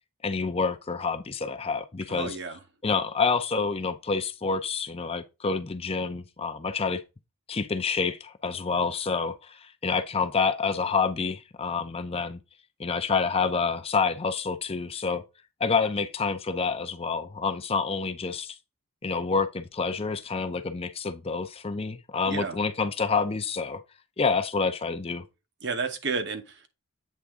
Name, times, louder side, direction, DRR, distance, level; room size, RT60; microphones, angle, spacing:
voice 1, 0.2-2.4 2.8-7.0 7.5-12.4 12.8-15.2 15.6-18.6 19.0-23.8 24.2-25.2, left 5 dB, 25° left, 0.5 m, -28 dB
voice 2, 2.1-2.6 22.3-22.6 25.6-26.7, right 4 dB, 55° right, 1.1 m, -31 dB
8.3 x 3.5 x 3.6 m
head